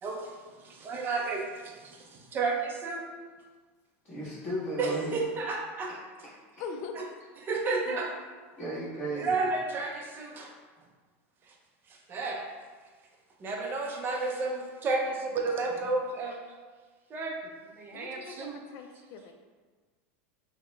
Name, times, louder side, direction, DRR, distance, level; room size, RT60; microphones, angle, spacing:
voice 1, 0.0-3.1 4.8-5.9 7.0-7.1 7.4-8.2 9.1-10.5 11.5-11.6 11.9-12.5 13.4-16.4 17.1-17.4 17.6-18.6, right 3 dB, 30° right, 1 dB, 0.5 m, -32 dB
voice 2, 4.0-5.1 7.8-7.9 8.6-9.4, right 1 dB, 30° left, -14 dB, 1.5 m, -35 dB
voice 3, 6.6-7.0 17.9-19.3, left 5 dB, 50° left, 5 dB, 0.4 m, -41 dB
4.1 x 2.1 x 3.3 m, 1.4 s
supercardioid pair, 140°, 7 cm